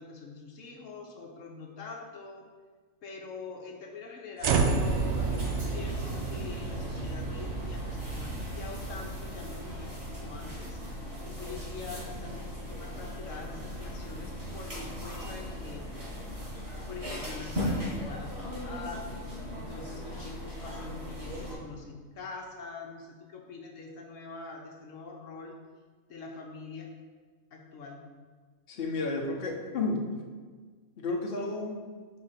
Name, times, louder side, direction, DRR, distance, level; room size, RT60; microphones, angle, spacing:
voice 1, 0.0-2.4 3.0-10.8 11.4-15.9 16.9-25.5 26.1-26.9 27.5-28.0, left 4 dB, 75° left, 0 dB, 1.1 m, -44 dB
sound 1, 4.4-10.7, right 4 dB, 65° right, 0.9 m, -31 dB
sound 2, 4.5-21.5, equal, 50° right, 2.3 m, -38 dB
voice 2, 28.7-30.0 31.0-31.9, left 3 dB, 50° left, 0 dB, 1.0 m, -32 dB
5.3 x 3.8 x 5.7 m, 1.5 s
omnidirectional pair, 1.4 m